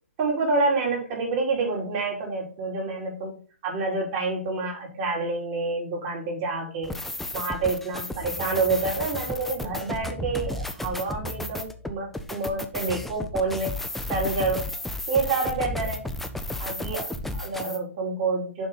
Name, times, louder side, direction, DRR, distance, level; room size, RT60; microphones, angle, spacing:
voice 1, 0.2-7.0 7.3-13.7 14.1-14.7 15.1-16.1 16.6-18.7, right 3 dB, 35° right, -2 dB, 3.6 m, -28 dB
sound 1, 6.8-17.8, left 1 dB, 5° left, 0.5 m, -33 dB
7.0 x 5.3 x 4.0 m, 0.40 s
figure-of-eight pair, 125°, 7 cm